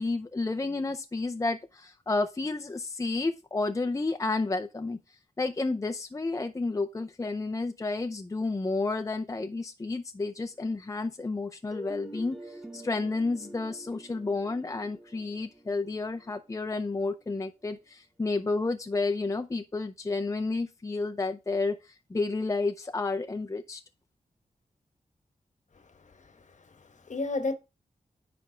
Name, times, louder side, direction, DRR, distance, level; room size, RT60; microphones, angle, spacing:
voice 1, 0.0-5.0 5.4-23.8, left 3 dB, 20° left, 0.6 m, -31 dB
sound 1, 11.7-17.5, right 1 dB, 5° right, 1.3 m, -47 dB
voice 2, 25.9-27.5, left 3 dB, 60° left, 1.2 m, -34 dB
10.0 x 3.4 x 5.0 m
wide cardioid pair, 95°, 14 cm